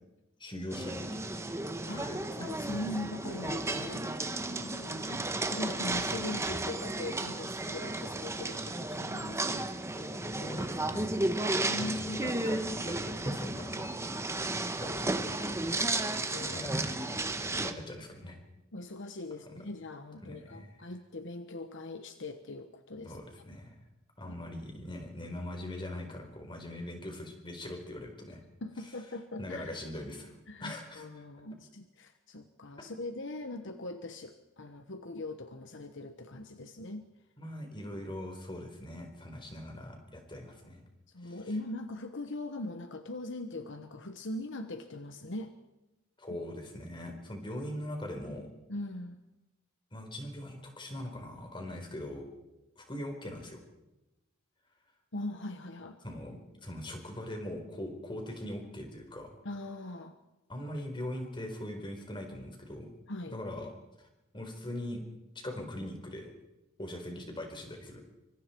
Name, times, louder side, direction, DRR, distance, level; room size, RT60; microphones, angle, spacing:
voice 1, 0.4-1.5 1.9-2.4 5.1-5.3 9.9-11.2 11.8-13.9 14.7-15.5 16.5-17.0 17.6-18.4 19.4-19.5 20.2-20.9 23.0-23.7 24.2-28.4 29.4-30.3 30.6-31.2 37.4-40.8 41.2-41.4 46.2-48.5 49.9-52.3 52.8-53.6 56.0-59.4 60.5-62.9 63.2-63.7 64.0-64.1 64.3-65.0 65.3-66.3 66.8-68.0, left 1 dB, 25° left, 4 dB, 4.4 m, -41 dB
sound 1, 0.7-17.7, right 2 dB, 15° right, 1.2 m, -33 dB
voice 2, 2.4-4.0 4.5-5.2 5.5-9.7 11.5-12.3 14.8-15.0 16.3-16.7 18.7-23.2 28.6-29.8 30.5-37.1 41.1-45.6 46.3-46.4 48.7-49.2 55.1-56.0 59.4-60.2 63.1-63.4, left 2 dB, 60° left, 8 dB, 1.2 m, -41 dB
25.5 x 25.0 x 4.6 m, 0.99 s
head